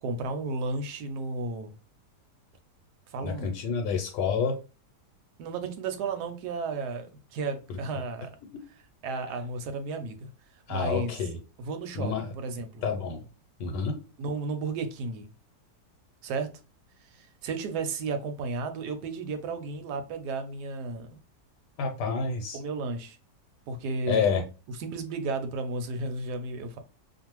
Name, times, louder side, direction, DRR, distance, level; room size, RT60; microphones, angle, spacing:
voice 1, 0.0-1.7 3.1-3.5 5.4-8.4 9.0-10.3 10.7-11.1 11.6-12.8 14.2-15.3 16.2-16.5 17.0-21.2 22.5-23.2 23.7-24.3 24.8-26.8, right 3 dB, 80° right, 1.1 m, -33 dB
voice 2, 3.2-4.6 7.7-7.8 10.7-11.4 11.9-12.3 12.8-13.2 13.6-14.0 21.8-22.6 24.1-24.4, left 5 dB, 80° left, 1.2 m, -28 dB
2.5 x 2.5 x 2.9 m
omnidirectional pair, 1.8 m